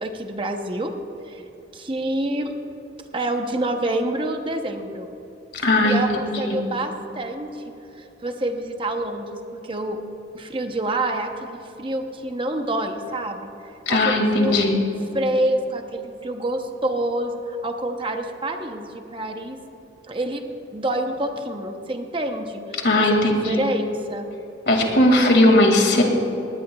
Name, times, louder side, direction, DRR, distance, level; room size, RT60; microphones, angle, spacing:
voice 1, 0.0-0.9 1.2-1.4 1.7-2.6 3.1-5.1 5.8-10.0 10.3-13.5 13.9-14.6 15.1-19.6 20.1-20.4 20.7-24.3, right 1 dB, 30° right, 5 dB, 0.8 m, -27 dB
voice 2, 5.5-6.0 6.4-6.6 13.9-14.8 22.8-23.6 24.7-26.0, left 1 dB, 65° left, 2 dB, 2.2 m, -18 dB
20.0 x 17.5 x 2.3 m, 2.9 s
head